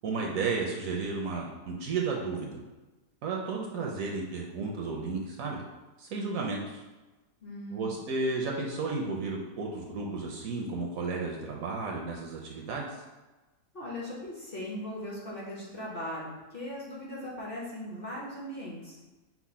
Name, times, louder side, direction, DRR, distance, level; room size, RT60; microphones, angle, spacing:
voice 1, 0.0-2.6 3.2-5.6 6.0-6.8 7.7-12.9, right 4 dB, 70° right, -1 dB, 0.9 m, -33 dB
voice 2, 7.4-7.9 13.7-19.1, left 1 dB, 45° left, -5 dB, 0.8 m, -39 dB
5.9 x 2.1 x 4.1 m, 1.2 s
omnidirectional pair, 1.7 m